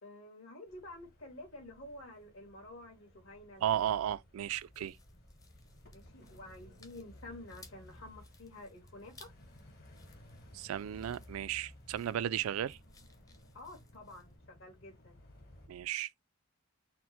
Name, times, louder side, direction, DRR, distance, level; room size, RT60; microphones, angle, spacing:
voice 1, 0.0-3.9 5.9-9.3 13.5-15.2, left 1 dB, 75° left, 1.8 m, -50 dB
sound 1, 0.7-15.7, left 1 dB, 50° left, 1.0 m, -58 dB
voice 2, 3.6-5.0 10.5-12.8 15.7-16.1, right 10 dB, 85° right, 0.3 m, -34 dB
sound 2, 4.4-14.4, left 2 dB, 15° left, 0.5 m, -60 dB
4.3 x 2.1 x 4.3 m
head